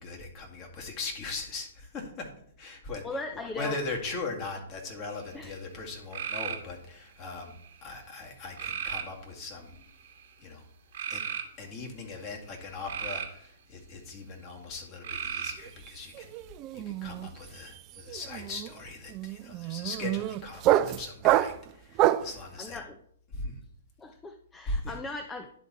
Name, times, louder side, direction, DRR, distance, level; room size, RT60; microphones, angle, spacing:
voice 1, 0.0-2.3 2.6-3.1 3.6-7.5 7.8-9.8 10.4-10.6 11.1-11.2 11.6-16.4 16.7-22.8 23.3-23.6 24.7-24.9, left 3 dB, 35° left, 1 dB, 2.0 m, -39 dB
voice 2, 3.0-3.8 5.3-5.5 22.6-22.9 24.0-25.5, left 2 dB, 15° left, 6 dB, 0.5 m, -38 dB
sound 1, 5.1-5.6 6.1-6.7 7.4-7.9 8.6-9.1 9.8-10.2 10.9-11.4 12.5-13.4 15.0-15.7, right 8 dB, 55° right, 1.3 m, -35 dB
sound 2, 15.6-15.9 16.1-22.4, right 13 dB, 35° right, 0.4 m, -27 dB
10.5 x 4.1 x 4.2 m, 0.66 s
figure-of-eight pair, 120°, 0 cm